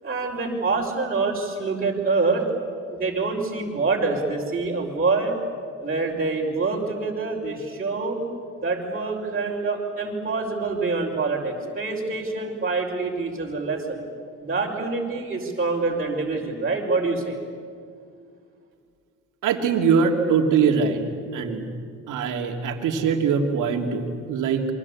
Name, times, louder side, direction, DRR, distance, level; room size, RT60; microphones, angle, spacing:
voice 1, 0.0-2.4 2.9-5.3 5.8-8.2 8.6-14.0 14.4-17.3, right 3 dB, 30° right, -4 dB, 4.9 m, -26 dB
voice 2, 19.4-21.0 21.3-21.6 22.1-24.7, right 6 dB, 90° right, 4 dB, 2.8 m, -22 dB
28.0 x 23.5 x 8.5 m, 2.2 s
cardioid pair, 90°, 30 cm